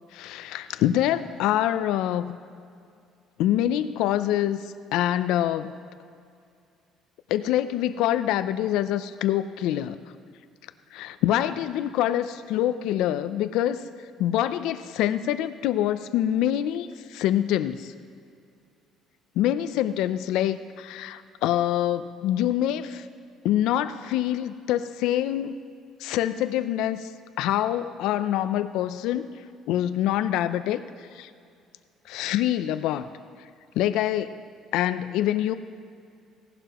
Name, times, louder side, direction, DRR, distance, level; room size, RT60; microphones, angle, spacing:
voice 1, 0.1-2.4 3.4-5.7 7.3-10.0 10.9-13.9 14.2-17.9 19.4-23.1 23.4-25.5 26.0-27.1 27.4-29.3 29.7-30.8 31.1-31.3 32.1-33.1 33.7-34.4 34.7-35.5, left 12 dB, 75° left, 12 dB, 0.5 m, -25 dB
17.0 x 11.5 x 3.0 m, 2.3 s
cardioid pair, 155°, 0 cm